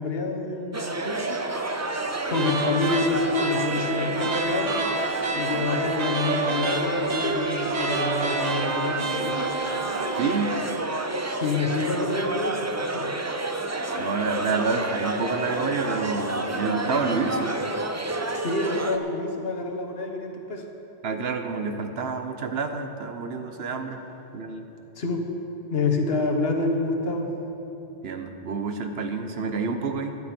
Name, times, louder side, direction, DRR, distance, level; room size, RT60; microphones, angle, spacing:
voice 1, 0.0-1.4 1.7-4.9 5.3-9.4 11.2-12.6 12.9-13.1 18.3-20.7 24.9-25.2 25.7-27.3, left 3 dB, 70° left, 3 dB, 1.5 m, -28 dB
party-talk, 0.7-19.0, right 2 dB, 20° right, 0.5 m, -29 dB
sound 1, 2.3-10.6, right 3 dB, 45° right, 0.9 m, -30 dB
voice 2, 10.2-10.5 14.0-17.6 21.0-24.0 24.3-24.6 28.0-30.2, right 4 dB, 75° right, 6 dB, 1.1 m, -28 dB
15.5 x 10.5 x 4.4 m, 3.0 s
omnidirectional pair, 1.1 m